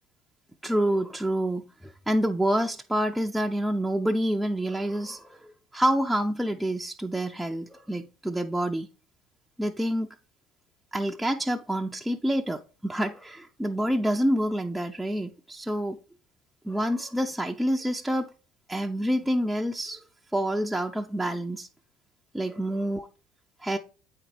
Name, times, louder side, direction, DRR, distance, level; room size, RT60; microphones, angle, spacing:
voice 1, 0.6-8.9 9.6-10.1 10.9-16.0 16.6-18.3 18.7-20.0 20.3-21.7 22.3-23.1 23.6-23.8, right 1 dB, 5° right, 2 dB, 0.5 m, -27 dB
8.2 x 5.0 x 3.2 m, 0.37 s
hypercardioid pair, 65°, 0 cm